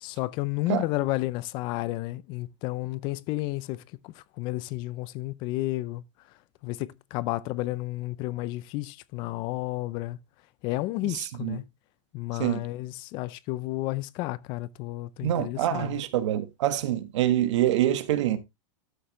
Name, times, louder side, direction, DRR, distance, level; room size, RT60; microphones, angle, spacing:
voice 1, 0.0-6.0 6.6-10.2 10.6-11.6 12.1-16.0, left 18 dB, 30° left, 0.5 m, -32 dB
voice 2, 11.0-11.6 12.4-12.6 15.2-18.4, right 12 dB, 65° right, 1.5 m, -26 dB
12.5 x 6.4 x 3.1 m
supercardioid pair, 170°, 16 cm